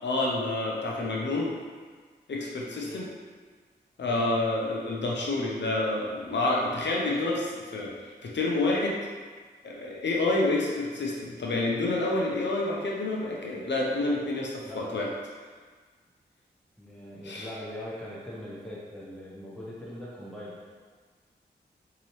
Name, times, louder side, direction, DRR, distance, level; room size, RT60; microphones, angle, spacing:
voice 1, 0.0-1.5 2.3-3.1 4.0-9.0 9.6-15.1 17.2-17.5, left 2 dB, 75° left, -2 dB, 0.8 m, -28 dB
voice 2, 16.8-20.6, left 1 dB, 5° left, -7 dB, 0.9 m, -41 dB
3.9 x 2.9 x 3.2 m, 1.5 s
cardioid pair, 45°, 19 cm